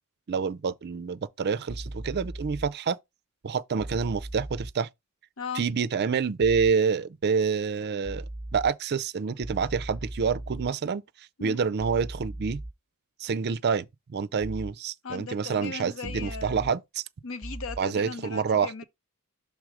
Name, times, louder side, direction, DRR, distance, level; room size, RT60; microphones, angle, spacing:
voice 1, 0.3-3.0 3.4-4.9 5.5-8.3 8.5-11.0 11.4-12.6 13.2-17.0 17.8-18.7, right 5 dB, 50° right, 0.4 m, -27 dB
sound 1, 1.7-2.7 3.8-4.7 6.4-6.7 8.0-8.7 9.4-10.7 11.8-12.7 14.4-14.7 16.0-16.7 17.4-17.8, right 1 dB, 15° right, 0.8 m, -38 dB
voice 2, 15.0-16.6 17.2-18.8, left 5 dB, 65° left, 0.8 m, -37 dB
6.3 x 3.4 x 4.8 m
head